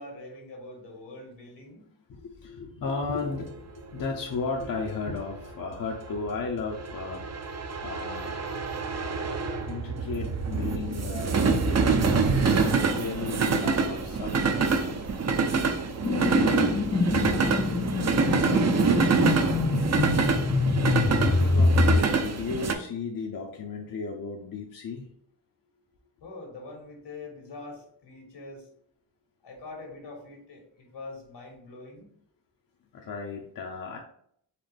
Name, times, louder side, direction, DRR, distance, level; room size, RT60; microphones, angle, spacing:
voice 1, 0.0-1.9 16.4-20.0 26.2-28.7 29.4-32.1, left 2 dB, 75° left, 1 dB, 1.7 m, -44 dB
voice 2, 2.1-7.2 7.8-8.4 9.6-15.0 21.1-25.1 32.9-34.0, left 4 dB, 55° left, 0 dB, 0.8 m, -35 dB
sound 1, 3.2-22.7, right 5 dB, 40° right, 0.6 m, -26 dB
sound 2, 16.0-22.0, left 3 dB, 20° left, 0.4 m, -25 dB
4.2 x 3.4 x 3.3 m, 0.65 s
cardioid pair, 50°, 42 cm